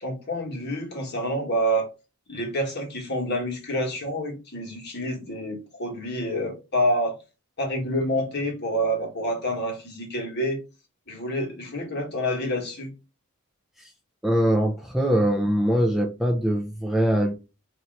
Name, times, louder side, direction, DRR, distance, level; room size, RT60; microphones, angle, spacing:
voice 1, 0.0-1.9 2.3-7.1 7.6-10.6 11.1-12.9, equal, 50° left, 1.5 m, -28 dB
voice 2, 14.2-17.3, equal, ahead, 0.4 m, -22 dB
3.1 x 2.9 x 3.8 m
head